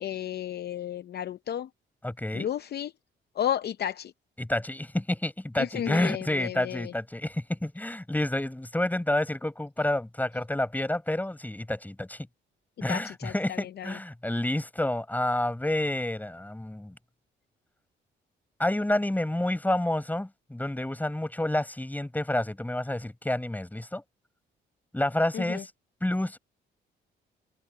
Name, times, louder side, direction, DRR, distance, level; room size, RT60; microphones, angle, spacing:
voice 1, 0.0-1.7 2.3-2.9 3.4-4.1 5.6-6.8 12.9-13.3 13.8-13.9 25.3-25.6, left 10 dB, 55° left, 0.6 m, -32 dB
voice 2, 2.0-2.5 4.4-12.2 12.8-16.9 18.6-24.0 24.9-25.7 26.0-26.4, left 1 dB, 10° left, 5.8 m, -29 dB
cardioid pair, 90°, 20 cm